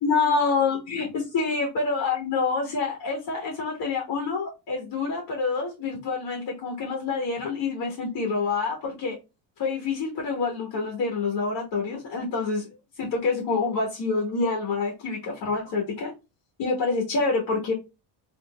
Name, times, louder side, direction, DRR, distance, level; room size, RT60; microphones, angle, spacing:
voice 1, 0.0-9.2 9.6-12.7 13.0-16.1 16.6-17.7, left 4 dB, 55° left, 1.4 m, -27 dB
3.7 x 2.8 x 2.3 m
cardioid pair, 125°, 45 cm